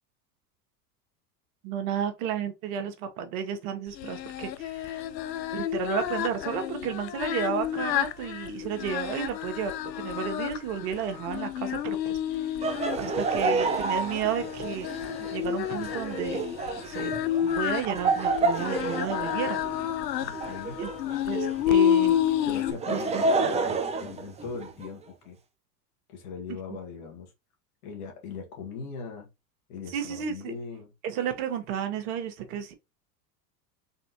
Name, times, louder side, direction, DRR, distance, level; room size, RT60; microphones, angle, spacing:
voice 1, 1.6-5.0 5.5-12.4 13.0-14.9 15.3-16.4 16.8-17.1 17.6-19.6 20.8-20.9 21.3-22.2 22.9-23.2 29.9-30.5 31.0-32.7, right 8 dB, 60° right, 1.3 m, -32 dB
Singing, 4.0-22.7, left 11 dB, 85° left, 0.7 m, -30 dB
Laughter, 12.6-21.7 22.5-24.9, right 3 dB, 15° right, 0.5 m, -30 dB
voice 2, 20.1-20.8 22.5-25.4 26.1-27.3 27.8-29.3 29.7-30.9, left 5 dB, 60° left, 1.8 m, -39 dB
4.0 x 3.7 x 2.9 m
hypercardioid pair, 85°, 49 cm